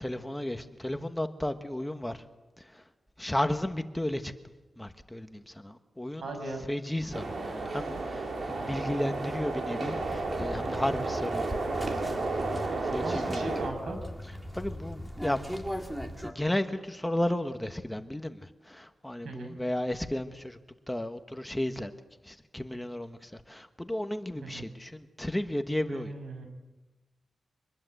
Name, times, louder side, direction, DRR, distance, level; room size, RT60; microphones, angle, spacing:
voice 1, 0.0-2.2 2.7-2.8 3.2-4.3 4.8-6.2 6.7-11.5 12.7-13.4 14.5-15.4 16.2-20.6 20.9-21.9 22.2-26.1, left 1 dB, 10° left, 1.2 m, -33 dB
voice 2, 6.2-6.6 13.0-14.0 19.2-19.5 24.4-24.7 25.9-26.5, right 2 dB, 85° right, 6.0 m, -37 dB
sound 1, 7.1-13.7, right 3 dB, 65° right, 3.7 m, -32 dB
sound 2, 9.9-16.3, equal, 10° right, 2.6 m, -39 dB
25.0 x 20.5 x 7.9 m
wide cardioid pair, 110°, 0 cm